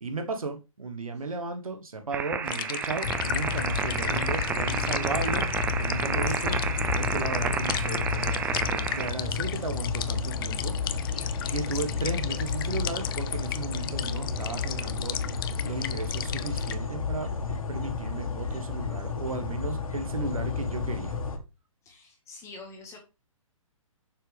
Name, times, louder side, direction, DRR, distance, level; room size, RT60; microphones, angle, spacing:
voice 1, 0.0-6.6 6.9-8.4 8.7-10.7 11.1-15.2 15.6-17.3 17.7-21.2, right 3 dB, 90° right, 1.4 m, -35 dB
sound 1, 2.1-9.1, right 6 dB, 10° right, 0.4 m, -31 dB
sound 2, 2.5-16.7, left 11 dB, 40° left, 0.6 m, -37 dB
sound 3, 3.0-21.4, left 5 dB, 80° left, 1.9 m, -32 dB
voice 2, 6.3-6.7 11.7-12.1 21.8-23.0, left 3 dB, 15° left, 1.7 m, -46 dB
6.6 x 6.2 x 3.5 m
hypercardioid pair, 140°, 17 cm